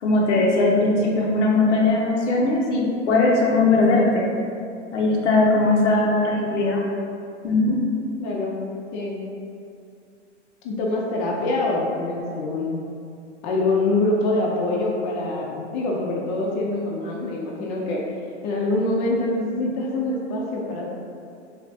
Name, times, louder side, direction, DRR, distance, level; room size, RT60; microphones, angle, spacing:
voice 1, 0.0-4.3 4.9-6.8 7.4-7.8, left 2 dB, 75° left, -2 dB, 0.7 m, -19 dB
voice 2, 8.2-8.6 8.9-9.2 10.6-12.8 13.4-18.0 18.4-20.9, left 2 dB, 40° left, -2 dB, 0.5 m, -25 dB
3.3 x 2.4 x 2.6 m, 2.4 s
hypercardioid pair, 115°, 36 cm